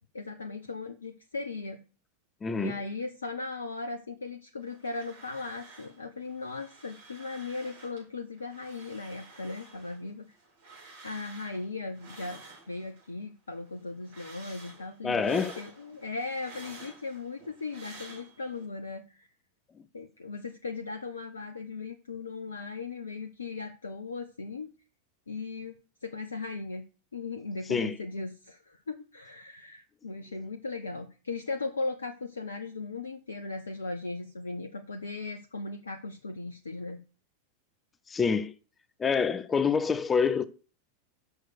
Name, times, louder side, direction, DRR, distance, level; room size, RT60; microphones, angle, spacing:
voice 1, 0.1-1.8 2.6-10.4 11.0-12.4 12.7-19.3 19.9-24.7 25.3-26.8 27.1-37.0, left 3 dB, 75° left, 0.7 m, -38 dB
voice 2, 2.4-2.8 15.0-15.6 27.7-28.0 38.1-38.5 39.0-40.5, left 5 dB, 15° left, 0.5 m, -26 dB
sound 1, 4.6-6.0 6.2-8.0 8.4-13.1 13.5-18.6, right 3 dB, 55° right, 4.6 m, -51 dB
6.5 x 6.1 x 6.3 m
figure-of-eight pair, 90°, 0 cm